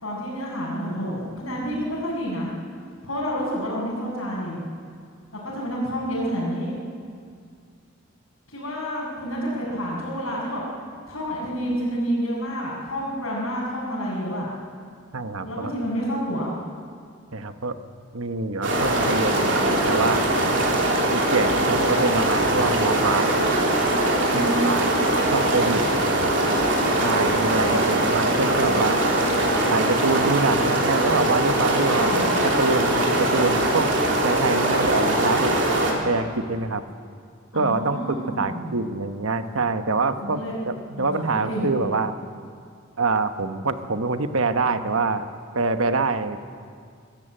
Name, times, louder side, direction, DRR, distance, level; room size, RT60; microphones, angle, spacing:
voice 1, 0.0-2.5 3.0-4.6 5.3-6.7 8.5-10.6 11.1-14.5 15.4-16.5 24.3-24.7 27.5-27.8 32.0-32.3 37.5-38.7 40.2-40.6 41.0-41.1 41.4-41.7, equal, 80° left, -9 dB, 5.9 m, -29 dB
voice 2, 15.1-15.7 17.3-17.8 18.1-20.3 21.1-23.7 24.3-24.9 25.3-26.2 27.0-29.0 29.7-33.9 34.2-36.8 37.5-42.2 43.0-45.3 45.5-46.4, right 3 dB, 85° right, 9 dB, 1.1 m, -25 dB
sound 1, 18.6-35.9, right 1 dB, 60° right, 3.6 m, -21 dB
23.5 x 13.5 x 8.9 m, 2.2 s
head